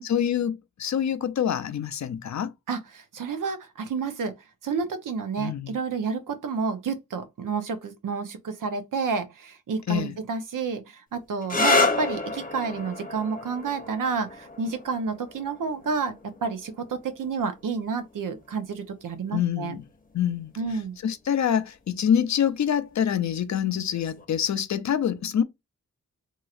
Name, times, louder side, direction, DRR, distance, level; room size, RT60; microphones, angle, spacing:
voice 1, 0.0-2.5 5.4-5.7 9.9-10.1 19.3-19.8 20.1-20.5 21.0-25.4, left 9 dB, 55° left, 0.6 m, -26 dB
voice 2, 2.7-19.8 20.6-21.0, right 5 dB, 70° right, 0.8 m, -30 dB
sound 1, 11.4-18.9 19.9-20.4 23.9-24.2, left 3 dB, 25° left, 0.9 m, -30 dB
3.0 x 2.8 x 2.4 m
cardioid pair, 50°, 33 cm